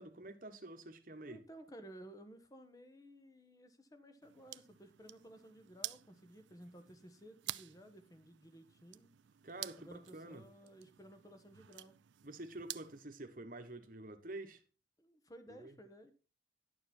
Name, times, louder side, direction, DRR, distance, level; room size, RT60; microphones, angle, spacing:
voice 1, 0.0-1.4 9.4-10.4 12.2-14.6 15.5-15.7, right 2 dB, 50° right, 1.2 m, -48 dB
voice 2, 1.2-9.1 9.8-12.0 15.0-16.1, right 1 dB, 20° left, 1.1 m, -56 dB
sound 1, 4.2-13.0, right 15 dB, 85° right, 0.4 m, -50 dB
11.0 x 6.9 x 4.3 m
head